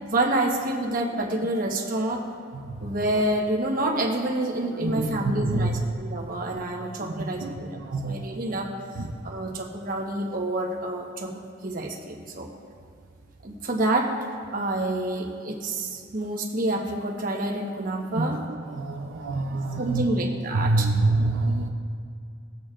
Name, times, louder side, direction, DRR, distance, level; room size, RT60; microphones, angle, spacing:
voice 1, 0.0-2.2 2.8-8.7 9.2-11.3 11.6-12.5 13.4-14.1 14.5-18.4 19.8-20.8, right 1 dB, 45° right, 0 dB, 1.1 m, -28 dB
voice 2, 4.8-5.8 7.2-8.2 9.0-9.3 18.1-20.1 20.5-21.7, right 2 dB, 85° right, 3 dB, 0.6 m, -27 dB
18.5 x 6.6 x 2.5 m, 2.3 s
head